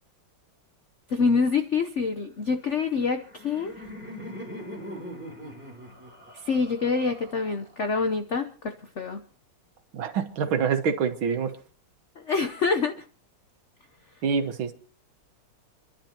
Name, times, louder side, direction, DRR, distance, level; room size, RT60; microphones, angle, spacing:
voice 1, 1.1-3.7 6.3-9.2 12.2-13.0, left 4 dB, 50° left, 0.8 m, -26 dB
Laughter, 2.9-7.9, equal, 5° right, 3.3 m, -42 dB
voice 2, 9.9-11.5 14.2-14.7, right 6 dB, 70° right, 2.1 m, -26 dB
29.0 x 11.5 x 2.9 m
omnidirectional pair, 2.3 m